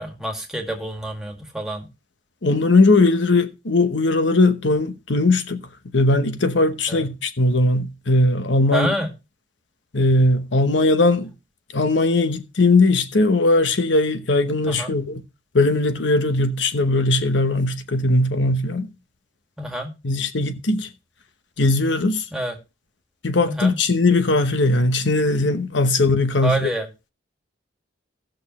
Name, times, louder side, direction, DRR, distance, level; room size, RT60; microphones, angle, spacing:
voice 1, 0.0-1.9 6.9-7.0 8.7-9.1 14.7-15.0 19.6-19.9 22.3-22.6 23.5-23.8 26.4-26.9, right 1 dB, 5° right, 2.0 m, -27 dB
voice 2, 2.4-8.9 9.9-11.3 11.7-15.2 15.5-18.9 20.0-20.9 21.6-22.3 23.2-26.7, left 2 dB, 80° left, 1.0 m, -19 dB
17.5 x 6.4 x 3.1 m
head